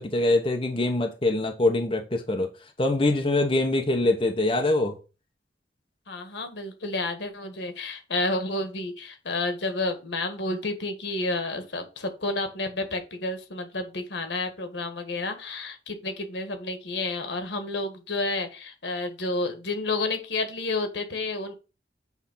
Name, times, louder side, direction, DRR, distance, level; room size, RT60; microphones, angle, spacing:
voice 1, 0.0-2.5 2.8-5.0, left 2 dB, 30° left, 0.9 m, -24 dB
voice 2, 6.1-21.5, left 2 dB, 85° left, 1.7 m, -30 dB
8.2 x 3.5 x 5.5 m
head